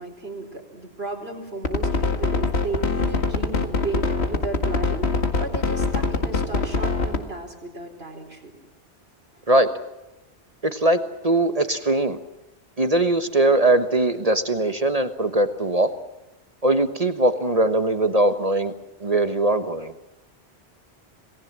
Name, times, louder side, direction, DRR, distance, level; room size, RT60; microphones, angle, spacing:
voice 1, 0.0-8.5, right 3 dB, 70° right, 2 dB, 4.8 m, -34 dB
sound 1, 1.6-7.2, left 4 dB, 80° left, 2.2 m, -23 dB
voice 2, 10.6-12.2 12.8-15.9 16.6-18.7 19.0-19.9, right 2 dB, 35° right, 10 dB, 1.3 m, -21 dB
27.0 x 19.5 x 7.5 m, 0.95 s
omnidirectional pair, 1.1 m